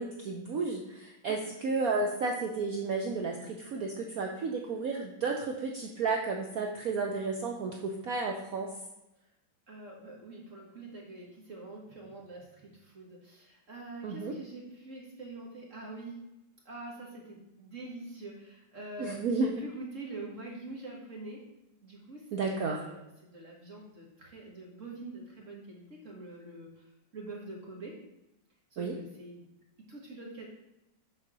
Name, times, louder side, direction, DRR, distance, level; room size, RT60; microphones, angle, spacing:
voice 1, 0.0-8.7 14.0-14.3 19.0-19.5 22.3-22.8 28.8-28.9, right 4 dB, 60° right, 1 dB, 1.0 m, -32 dB
voice 2, 9.7-16.2 16.6-21.4 21.8-27.9 28.7-29.5 29.9-30.4, right 2 dB, 45° right, -2 dB, 1.6 m, -45 dB
6.6 x 4.2 x 6.0 m, 0.90 s
omnidirectional pair, 2.0 m